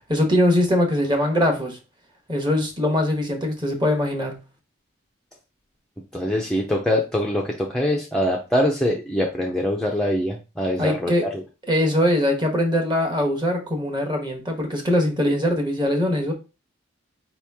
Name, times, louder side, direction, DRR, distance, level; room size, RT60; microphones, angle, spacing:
voice 1, 0.1-1.8 2.3-4.4 10.8-11.2 11.7-16.3, left 1 dB, 25° right, 2 dB, 1.1 m, -22 dB
voice 2, 6.1-11.4, left 1 dB, 5° left, -1 dB, 0.5 m, -23 dB
4.7 x 3.0 x 3.4 m, 0.29 s
head